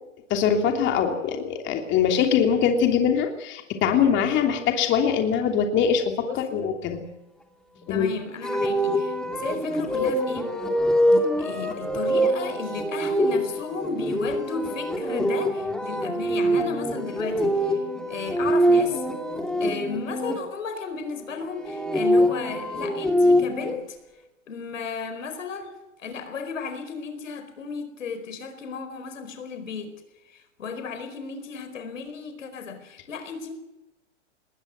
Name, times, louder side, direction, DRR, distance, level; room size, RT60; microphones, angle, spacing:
voice 1, 0.3-7.0 7.9-8.1, left 7 dB, 30° left, 3.1 m, -22 dB
voice 2, 6.3-6.7 7.9-10.5 11.1-17.8 18.1-19.0 19.6-24.0 24.5-25.7 26.0-30.0 30.3-33.5, left 5 dB, 85° left, 4.7 m, -34 dB
sound 1, 8.4-20.3 21.5-23.7, equal, ahead, 3.0 m, -24 dB
20.5 x 19.5 x 8.2 m
hypercardioid pair, 130°, 38 cm